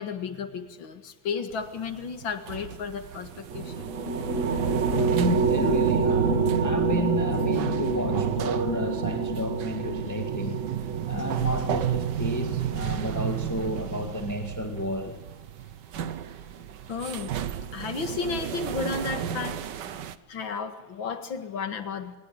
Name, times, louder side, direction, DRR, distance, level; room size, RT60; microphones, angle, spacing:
voice 1, 0.0-3.9 16.9-17.3 17.7-19.6 20.3-22.2, left 5 dB, 90° left, 9 dB, 2.6 m, -33 dB
sound 1, 1.5-20.2, right 10 dB, 70° right, 1.6 m, -34 dB
sound 2, 3.5-13.3, right 4 dB, 40° right, 2.0 m, -27 dB
voice 2, 5.1-10.6 11.1-15.2, left 1 dB, 10° left, 5 dB, 1.9 m, -31 dB
25.5 x 21.5 x 8.6 m, 1.2 s
omnidirectional pair, 2.1 m